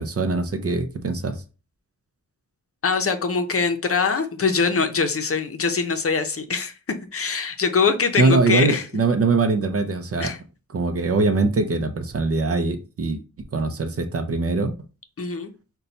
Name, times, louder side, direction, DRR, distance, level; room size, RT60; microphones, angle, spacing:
voice 1, 0.0-1.4 8.2-10.3 10.7-13.2 13.5-14.7, right 3 dB, 50° right, 0.6 m, -22 dB
voice 2, 2.8-6.7 7.1-8.8 10.2-10.4 15.2-15.5, left 5 dB, 50° left, 0.6 m, -23 dB
5.5 x 2.3 x 3.9 m
wide cardioid pair, 150°, 30 cm